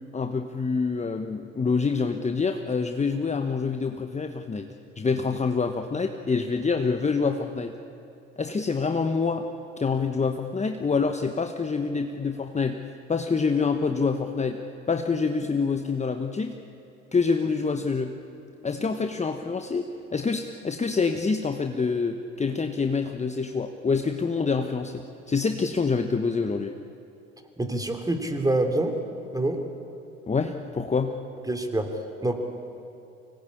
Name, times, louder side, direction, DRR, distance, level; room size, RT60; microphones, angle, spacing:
voice 1, 0.1-4.7 5.0-7.7 8.4-9.5 9.8-12.8 13.1-14.6 14.9-16.6 17.1-18.1 18.6-19.9 20.1-26.7 30.3-31.2, left 4 dB, 20° left, 5 dB, 1.2 m, -26 dB
voice 2, 27.6-29.0 29.3-29.6 31.4-32.4, right 2 dB, 10° right, 5 dB, 3.5 m, -26 dB
25.0 x 19.5 x 8.7 m, 2.7 s
hypercardioid pair, 65°, 36 cm